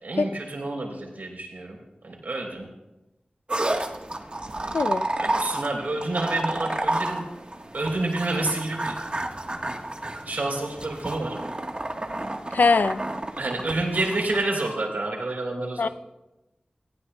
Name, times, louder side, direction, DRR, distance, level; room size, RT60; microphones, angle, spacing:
voice 1, 0.0-1.8 2.0-2.6 4.6-4.8 5.2-7.2 7.7-8.9 10.2-11.4 13.3-15.9, right 2 dB, 80° right, 0 dB, 3.6 m, -28 dB
sound 1, 3.5-14.4, right 1 dB, 40° right, 1.3 m, -31 dB
voice 2, 4.7-5.1 12.5-13.0 15.8-15.9, left 4 dB, 85° left, 12 dB, 0.4 m, -21 dB
18.0 x 15.5 x 2.3 m, 1.0 s
wide cardioid pair, 50°, 3 cm